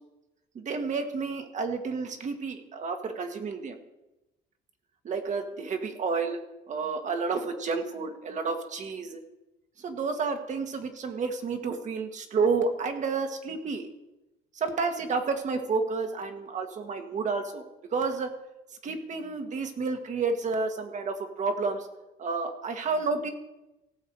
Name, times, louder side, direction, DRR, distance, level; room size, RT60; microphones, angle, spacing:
voice 1, 0.5-3.8 5.0-6.4 6.7-9.2 9.8-13.9 14.5-17.6 17.9-18.3 18.8-21.9 22.2-23.3, right 4 dB, 45° right, 6 dB, 1.7 m, -30 dB
17.5 x 7.1 x 4.7 m, 0.98 s
cardioid pair, 110°, 17 cm